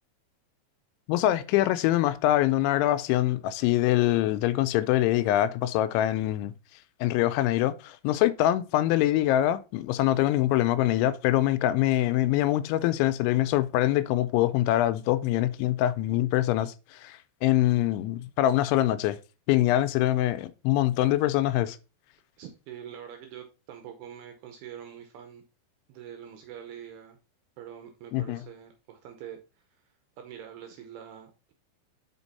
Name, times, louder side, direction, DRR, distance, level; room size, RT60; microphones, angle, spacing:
voice 1, 1.1-6.5 7.0-19.2 19.5-21.8 28.1-28.4, left 14 dB, 85° left, 2.9 m, -24 dB
voice 2, 22.4-25.5 25.9-27.2 27.6-29.8 30.2-31.5, right 9 dB, 75° right, 2.4 m, -45 dB
6.3 x 5.2 x 4.0 m
omnidirectional pair, 5.3 m